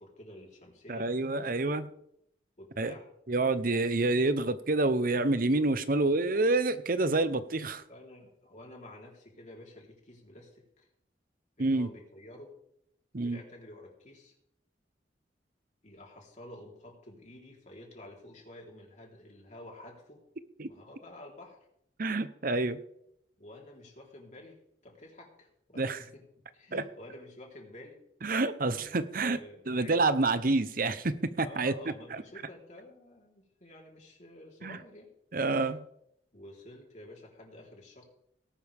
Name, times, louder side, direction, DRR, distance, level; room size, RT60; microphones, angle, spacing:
voice 1, 0.0-1.1 2.6-3.1 5.9-6.2 7.9-10.9 11.6-12.5 13.2-14.3 15.8-20.2 20.6-21.7 23.4-26.2 26.5-28.0 28.7-28.9 29.2-30.0 31.4-35.1 36.3-38.1, left 1 dB, 45° left, -1 dB, 3.9 m, -50 dB
voice 2, 0.9-1.9 2.8-2.9 3.3-7.8 11.6-11.9 13.1-13.4 20.6-20.7 22.0-22.8 25.8-26.0 26.7-26.8 28.2-29.4 29.7-31.7 32.1-32.2 34.6-34.8 35.3-35.8, right 2 dB, 55° right, 12 dB, 0.9 m, -28 dB
18.0 x 11.5 x 3.6 m, 0.74 s
head